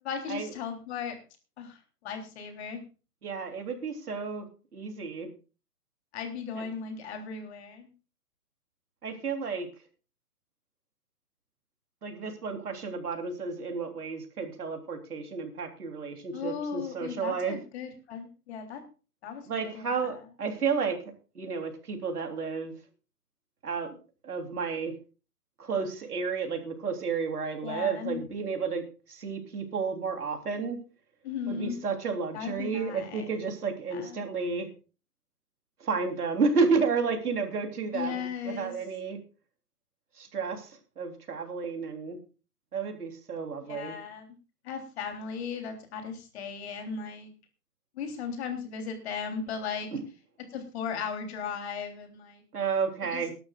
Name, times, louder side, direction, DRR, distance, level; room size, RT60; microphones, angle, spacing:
voice 1, 0.0-1.2 1.6-2.8 6.1-7.9 16.3-18.8 19.2-20.2 27.6-28.2 31.2-31.8 32.3-33.5 33.9-34.2 37.9-38.7 43.6-44.3 44.6-47.3 47.9-49.9 50.5-52.4 53.0-53.3, left 6 dB, 45° left, 5 dB, 3.4 m, -37 dB
voice 2, 3.2-4.5 4.7-5.3 6.5-6.7 9.0-9.7 12.0-17.5 19.5-21.0 21.3-22.7 23.6-24.9 25.6-28.8 29.1-30.8 31.5-34.7 35.8-39.2 40.2-40.7 41.0-42.2 42.7-43.9 49.9-50.0 52.5-53.3, right 5 dB, 75° right, 5 dB, 3.4 m, -31 dB
21.5 x 12.0 x 2.4 m, 0.34 s
hypercardioid pair, 135°, 46 cm